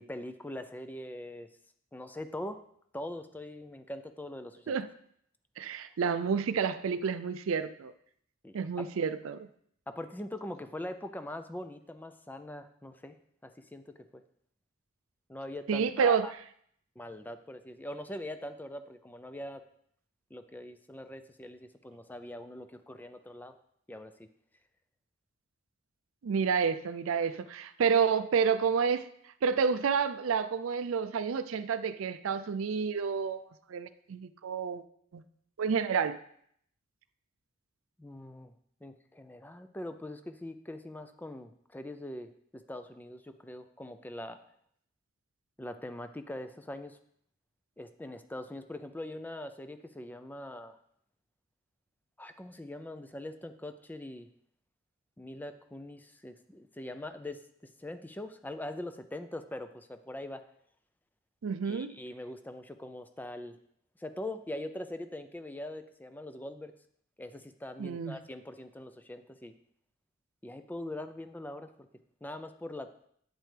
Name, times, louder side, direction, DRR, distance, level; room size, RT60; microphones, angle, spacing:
voice 1, 0.0-1.5 1.9-2.6 2.9-4.8 8.4-8.9 9.9-13.2 13.4-14.2 15.3-16.3 17.0-19.6 20.3-23.6 23.9-24.3 38.0-38.5 38.8-44.4 45.6-47.0 47.8-50.8 52.2-54.3 55.2-60.4 61.6-63.6 64.0-66.7 67.2-69.5 70.4-71.9 72.2-72.9, left 1 dB, 10° left, 10 dB, 0.4 m, -42 dB
voice 2, 5.6-7.9 8.5-9.5 15.7-16.3 26.2-29.1 29.4-33.4 33.7-34.8 35.1-35.2 35.6-36.2 61.4-61.9 67.8-68.2, right 6 dB, 90° right, 13 dB, 0.4 m, -29 dB
8.2 x 7.6 x 3.3 m, 0.67 s
head